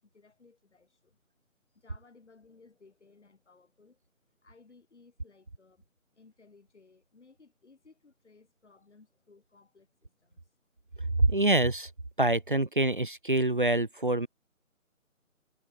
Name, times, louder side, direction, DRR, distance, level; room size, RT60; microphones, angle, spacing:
voice 1, 0.0-1.2 1.7-4.0 4.4-5.9 6.1-10.5, left 4 dB, 55° left, 6.7 m, -60 dB
voice 2, 11.2-11.9 12.2-14.3, right 2 dB, 40° right, 0.6 m, -25 dB
figure-of-eight pair, 160°, 42 cm